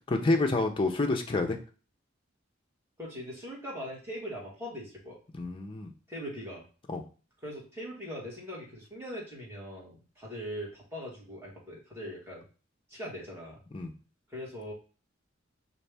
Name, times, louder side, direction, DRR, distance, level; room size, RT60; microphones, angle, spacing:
voice 1, 0.1-1.6 5.3-5.9 6.9-7.0 13.7-13.9, left 2 dB, 25° left, 3 dB, 0.5 m, -28 dB
voice 2, 3.0-5.2 6.1-6.6 7.4-12.4 12.9-13.6 14.3-14.7, equal, 15° right, -4 dB, 1.5 m, -41 dB
5.4 x 2.6 x 3.3 m, 0.36 s
head